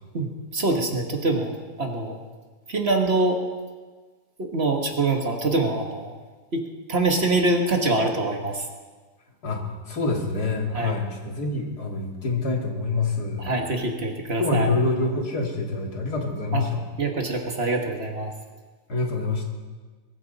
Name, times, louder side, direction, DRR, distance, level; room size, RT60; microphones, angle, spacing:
voice 1, 0.1-1.5 1.8-2.1 2.7-3.4 4.4-6.1 6.5-8.6 10.7-11.0 13.4-14.7 16.5-16.6 17.0-18.3, right 2 dB, 40° right, 3 dB, 1.6 m, -24 dB
voice 2, 9.4-13.5 14.4-16.8 18.9-19.4, left 3 dB, 75° left, 0 dB, 2.8 m, -26 dB
21.0 x 14.5 x 4.1 m, 1.4 s
omnidirectional pair, 1.7 m